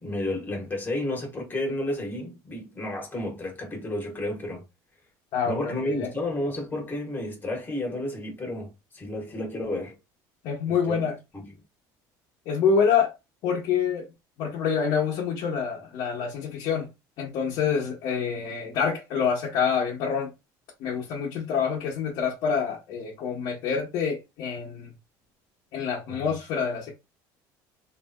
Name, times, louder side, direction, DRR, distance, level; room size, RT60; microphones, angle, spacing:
voice 1, 0.0-4.6 5.4-10.0 10.7-11.0 11.3-11.5 26.1-26.2, left 1 dB, 25° left, 1.2 m, -31 dB
voice 2, 5.3-6.1 10.4-11.2 12.5-13.1 13.4-14.1 14.4-16.9 17.2-20.3 20.8-24.9 25.7-26.9, left 6 dB, 70° left, 1.0 m, -26 dB
3.3 x 2.7 x 2.2 m
cardioid pair, 130°, 9 cm